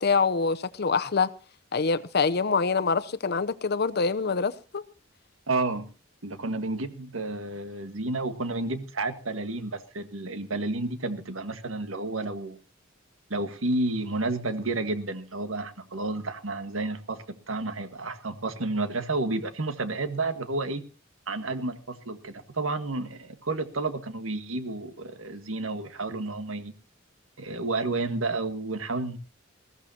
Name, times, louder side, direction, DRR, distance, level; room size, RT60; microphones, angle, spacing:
voice 1, 0.0-1.3 1.7-4.8, left 4 dB, 55° left, 0.7 m, -25 dB
voice 2, 5.5-5.9 6.2-12.6 13.3-20.8 21.3-26.7 27.4-29.2, right 2 dB, 90° right, 1.6 m, -31 dB
20.5 x 15.5 x 2.8 m
head